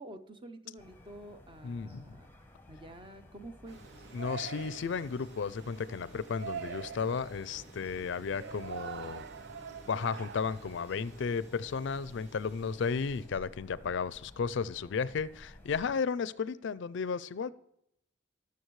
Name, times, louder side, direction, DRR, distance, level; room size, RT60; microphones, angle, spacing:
voice 1, 0.0-2.3 2.7-3.8, right 1 dB, 25° right, 9 dB, 0.7 m, -48 dB
sound 1, 0.8-15.9, left 1 dB, 10° left, 0.9 m, -55 dB
voice 2, 1.6-2.2 4.1-9.2 9.9-17.5, left 5 dB, 65° left, 18 dB, 0.4 m, -34 dB
Yell, 3.7-11.4, right 7 dB, 60° right, 0.4 m, -45 dB
sound 2, 3.7-13.3, equal, 90° right, 4.2 m, -55 dB
19.0 x 6.9 x 3.1 m, 0.78 s
head